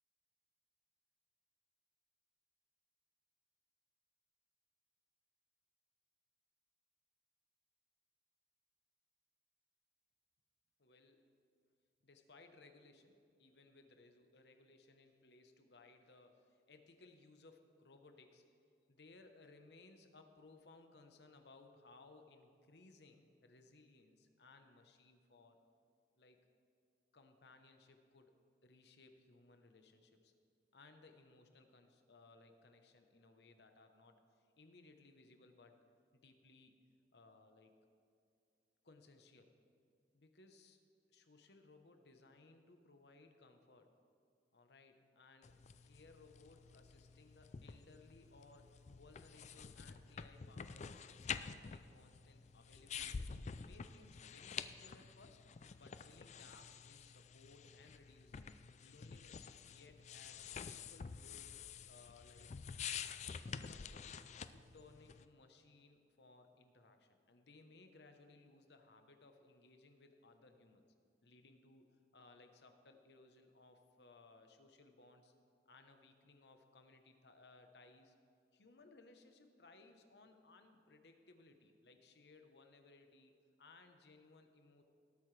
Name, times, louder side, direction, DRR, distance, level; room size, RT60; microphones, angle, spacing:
voice 1, 10.8-11.3 12.0-18.4 18.9-25.6 26.2-26.4 27.1-28.3 28.6-30.3 30.7-35.7 36.1-36.7 37.1-37.8 38.8-39.5 40.1-40.8 41.1-43.9 44.5-45.6 45.8-53.3 53.6-55.4 55.8-58.5 58.8-61.5 61.9-62.5 63.4-64.2 64.5-70.9 71.2-71.9 72.1-75.3 75.7-78.1 78.5-83.3 83.6-84.8, left 3 dB, 65° left, 6 dB, 1.0 m, -63 dB
sound 1, 45.4-65.2, left 6 dB, 40° left, 0.4 m, -49 dB
18.5 x 8.6 x 3.3 m, 2.5 s
head